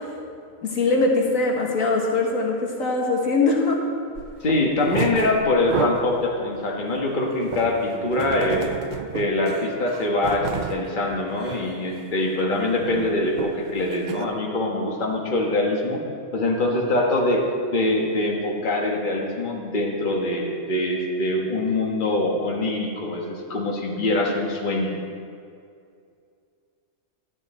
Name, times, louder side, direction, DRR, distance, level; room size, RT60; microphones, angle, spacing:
voice 1, 0.6-3.8, left 3 dB, 75° left, -1 dB, 1.8 m, -22 dB
sound 1, 4.1-4.3 4.7-6.2 6.6-10.9 11.3-11.7 12.0-12.3 12.5-14.2, right 7 dB, 80° right, 0.4 m, -32 dB
voice 2, 4.4-8.7 9.1-16.0 16.3-17.4 17.7-24.9, left 2 dB, 35° left, -1 dB, 1.5 m, -24 dB
12.5 x 10.5 x 4.3 m, 2.3 s
omnidirectional pair, 1.4 m